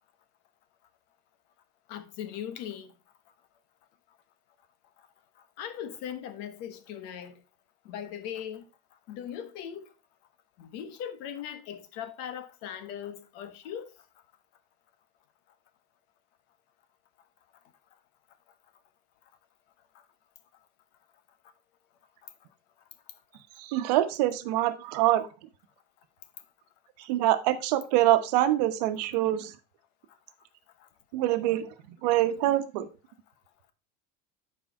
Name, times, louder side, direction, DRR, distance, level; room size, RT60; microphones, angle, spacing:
voice 1, 1.9-2.9 5.6-7.4 7.8-8.7 9.1-9.9 10.6-13.9, left 9 dB, 55° left, 1.1 m, -39 dB
voice 2, 23.6-25.3 27.0-29.5 31.1-31.7 32.0-32.9, right 14 dB, 80° right, 1.0 m, -25 dB
8.9 x 4.8 x 4.7 m
cardioid pair, 170°, 20 cm